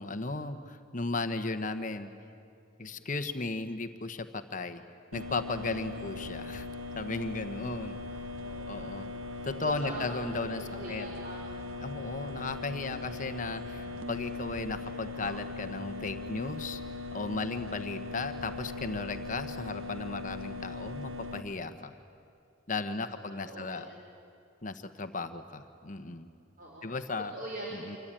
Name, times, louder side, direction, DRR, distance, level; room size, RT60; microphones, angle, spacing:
voice 1, 0.0-2.1 2.8-4.8 5.1-6.7 6.9-8.0 8.7-9.1 9.4-11.1 11.8-16.8 17.1-21.9 22.7-23.9 24.6-26.3 26.8-27.3 27.7-28.0, left 3 dB, 40° left, 8 dB, 1.2 m, -35 dB
sound 1, 5.1-21.4, left 3 dB, 90° right, 1.5 m, -40 dB
voice 2, 8.4-11.5 12.0-12.3 17.4-17.7 22.9-23.8 26.6-27.1 27.3-28.0, right 1 dB, 45° right, -3 dB, 4.2 m, -44 dB
27.0 x 24.5 x 9.1 m, 2.5 s
head